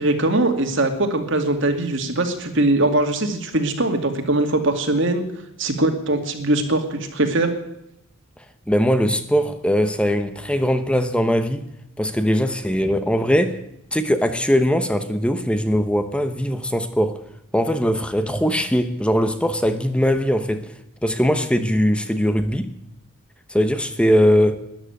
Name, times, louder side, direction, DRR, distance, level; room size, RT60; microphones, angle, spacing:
voice 1, 0.0-5.2 5.6-7.5, right 2 dB, 60° right, 2.4 m, -21 dB
voice 2, 8.7-11.6 12.0-13.6 13.9-17.2 17.5-20.7 21.0-22.7 23.5-24.6, equal, 5° left, 1.0 m, -20 dB
13.5 x 11.0 x 9.1 m
head